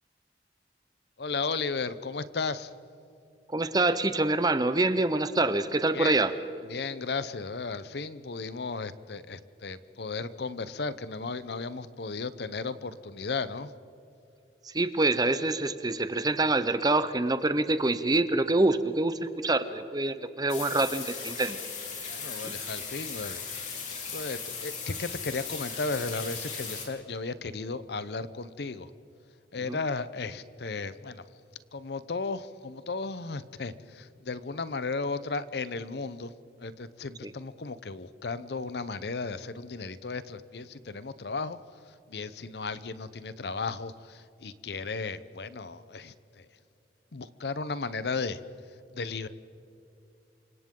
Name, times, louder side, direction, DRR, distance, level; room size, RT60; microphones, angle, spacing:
voice 1, 1.2-2.7 5.9-6.2 6.6-13.7 22.1-23.4 24.1-28.9 29.5-31.2 31.7-36.3 36.6-41.6 42.1-46.5 47.1-48.4 48.9-49.3, left 4 dB, 70° left, 15 dB, 0.7 m, -35 dB
voice 2, 3.5-6.3 14.7-21.6 22.4-22.5 29.7-29.8 37.2-37.3, right 2 dB, 20° right, 12 dB, 0.8 m, -26 dB
sound 1, 20.5-26.9, left 5 dB, 45° left, 3.7 m, -37 dB
28.0 x 25.0 x 3.8 m, 2.8 s
head